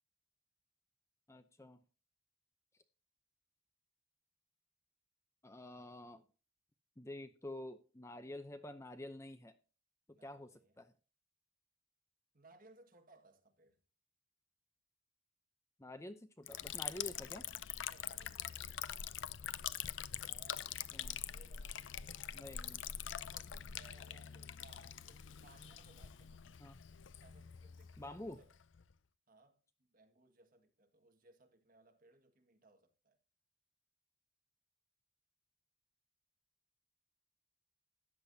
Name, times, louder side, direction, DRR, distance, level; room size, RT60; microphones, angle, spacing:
voice 1, 1.3-1.8 5.4-6.2 7.0-9.5 10.1-10.9 15.8-17.5 20.9-21.2 22.3-22.8 26.6-26.8 28.0-28.4, left 1 dB, 15° left, 0.6 m, -49 dB
voice 2, 10.1-10.7 12.3-13.8 17.9-19.0 20.2-20.8 21.1-26.6 27.2-28.5 29.3-33.2, right 2 dB, 45° right, 1.8 m, -65 dB
Liquid, 16.5-28.9, left 10 dB, 70° left, 0.5 m, -45 dB
14.0 x 9.8 x 2.7 m
head